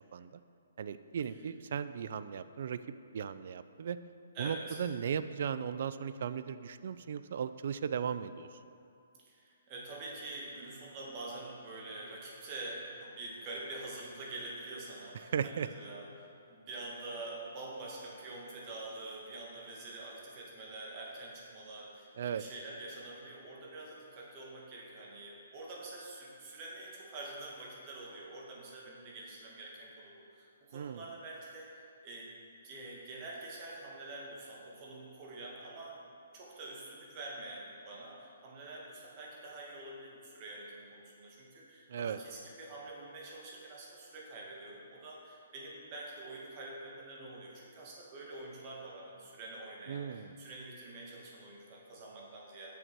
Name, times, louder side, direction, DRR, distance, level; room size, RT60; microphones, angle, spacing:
voice 1, 0.8-2.8 3.1-4.0 4.4-8.6 15.3-15.7 22.2-22.4 30.7-31.0 41.9-42.2 49.9-50.3, right 7 dB, 55° right, 13 dB, 0.3 m, -36 dB
voice 2, 4.3-4.8 9.3-32.3 32.6-36.0 36.3-52.7, right 2 dB, 30° right, -3 dB, 1.6 m, -46 dB
6.7 x 6.3 x 4.6 m, 2.5 s
hypercardioid pair, 160°, 0 cm